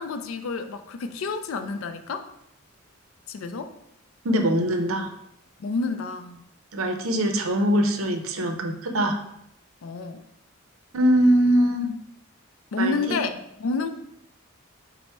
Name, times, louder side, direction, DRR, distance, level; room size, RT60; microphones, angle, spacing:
voice 1, 0.0-2.3 3.3-3.7 5.6-6.4 9.8-10.2 12.7-13.9, left 4 dB, 75° left, 9 dB, 0.4 m, -29 dB
voice 2, 4.2-5.1 6.7-9.1 10.9-11.9 12.8-13.2, equal, 80° right, 5 dB, 0.5 m, -22 dB
4.2 x 2.0 x 4.4 m, 0.77 s
head